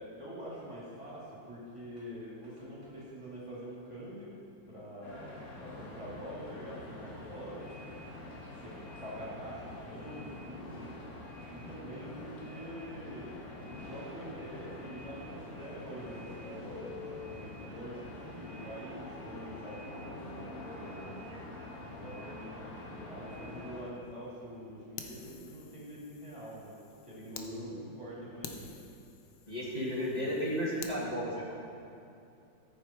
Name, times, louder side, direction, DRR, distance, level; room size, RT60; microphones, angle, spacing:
voice 1, 0.0-4.4 4.7-7.7 8.4-11.0 11.4-13.4 13.6-21.2 21.8-26.8 27.0-28.7, equal, 15° right, -7 dB, 2.7 m, -45 dB
sound 1, 5.0-23.8, left 2 dB, 55° left, 2.3 m, -46 dB
Fire, 25.0-27.5 27.9-28.0 28.4-31.0, left 7 dB, 85° left, 1.5 m, -49 dB
voice 2, 27.2-27.7 29.5-31.5, equal, 25° left, -7 dB, 1.7 m, -34 dB
14.5 x 6.7 x 4.5 m, 2.7 s
omnidirectional pair, 2.0 m